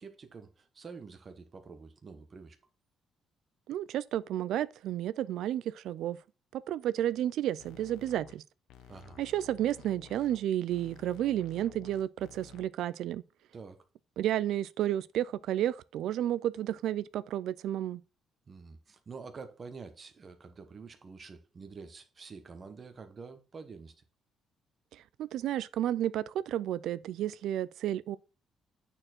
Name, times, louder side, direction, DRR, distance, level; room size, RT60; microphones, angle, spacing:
voice 1, 0.0-2.6 8.9-9.2 13.5-13.8 18.5-23.9, right 5 dB, 30° right, 1.1 m, -47 dB
voice 2, 3.7-6.2 6.5-8.4 9.2-13.2 14.2-18.0 24.9-28.2, right 12 dB, 70° right, 0.3 m, -32 dB
sound 1, 7.6-8.4 8.7-10.4 10.7-12.7, left 8 dB, 90° left, 1.0 m, -53 dB
8.8 x 4.4 x 4.3 m
cardioid pair, 145°, 0 cm